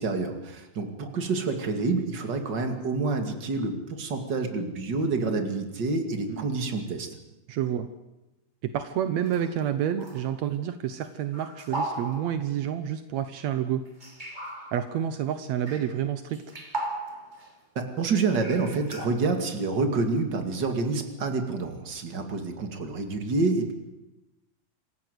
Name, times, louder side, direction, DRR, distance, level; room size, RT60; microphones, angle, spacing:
voice 1, 0.0-7.1 17.8-23.7, right 3 dB, 35° right, 6 dB, 2.3 m, -28 dB
voice 2, 7.5-7.9 8.6-13.9 14.7-16.4, right 10 dB, 80° right, 10 dB, 1.6 m, -29 dB
sound 1, 9.3-9.7 10.0-10.4 11.3-12.5 14.0-14.9 15.7-16.0 16.3-17.5 18.4-19.1, right 2 dB, 15° right, 2.2 m, -37 dB
27.0 x 15.5 x 8.1 m, 0.99 s
omnidirectional pair, 4.5 m